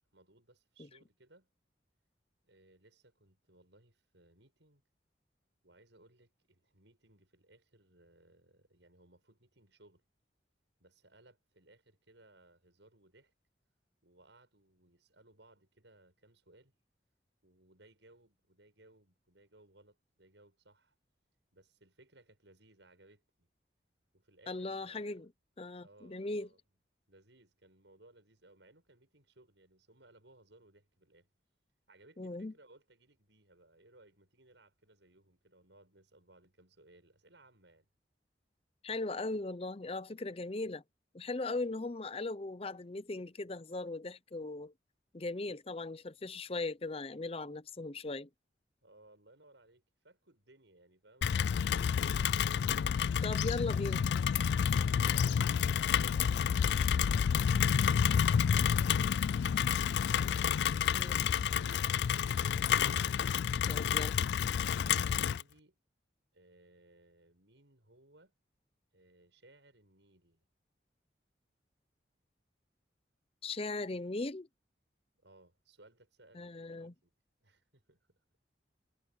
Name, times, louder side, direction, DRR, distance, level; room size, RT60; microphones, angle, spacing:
voice 1, 0.1-1.5 2.4-4.8 5.6-10.0 10.8-13.3 14.0-16.7 17.4-20.9 21.5-23.5 24.1-25.2 25.8-26.6 27.1-31.3 31.9-37.9 48.8-52.2 55.0-59.9 60.6-62.5 65.2-65.8 66.3-68.3 68.9-70.5 75.1-77.1 77.4-78.2, right 2 dB, 85° right, 7.7 m, -63 dB
voice 2, 24.5-25.3 25.6-26.5 32.2-32.5 38.8-40.8 41.1-44.7 45.1-48.3 53.2-54.1 60.9-61.3 63.7-64.2 73.4-74.5 76.3-76.9, left 2 dB, 35° left, 0.7 m, -38 dB
Rain, 51.2-65.4, left 7 dB, 70° left, 0.3 m, -29 dB
head